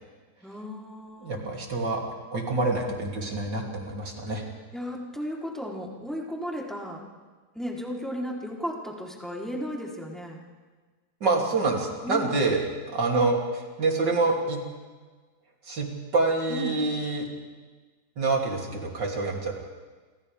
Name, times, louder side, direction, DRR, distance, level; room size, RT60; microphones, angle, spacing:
voice 1, 0.4-1.5 4.7-7.0 7.5-10.4 12.0-12.4 16.5-16.8, equal, ahead, -3 dB, 3.5 m, -35 dB
voice 2, 1.2-4.4 11.2-12.6 12.9-14.6 15.7-15.9 16.1-17.3 18.2-19.6, right 3 dB, 75° right, -1 dB, 3.7 m, -26 dB
29.0 x 25.0 x 3.5 m, 1.4 s
omnidirectional pair, 1.9 m